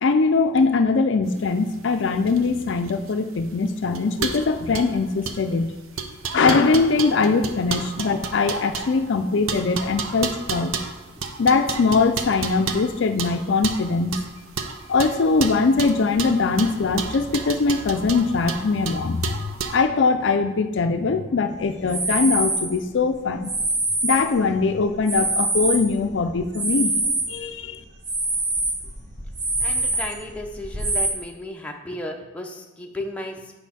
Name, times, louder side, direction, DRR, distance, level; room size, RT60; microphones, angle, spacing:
voice 1, 0.0-5.7 6.3-10.7 11.4-14.1 14.9-23.5 24.0-27.8, left 4 dB, 60° left, 8 dB, 0.4 m, -21 dB
sound 1, 1.3-19.8, right 5 dB, 85° right, 0.6 m, -32 dB
sound 2, 21.8-22.7 23.4-24.5 24.9-27.4 27.7-31.1, right 2 dB, 40° right, 1.3 m, -25 dB
voice 2, 29.6-33.5, left 1 dB, 5° left, 1 dB, 0.6 m, -34 dB
8.1 x 5.3 x 4.2 m, 1.1 s
head